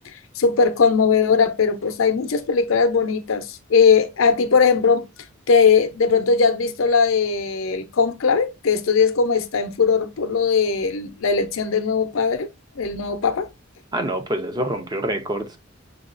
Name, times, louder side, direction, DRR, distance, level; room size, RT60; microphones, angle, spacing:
voice 1, 0.4-5.1 5.5-12.5 12.8-13.5, left 5 dB, 75° left, 0.5 m, -19 dB
voice 2, 13.9-15.6, right 1 dB, 20° right, 0.5 m, -26 dB
6.3 x 2.3 x 2.5 m
head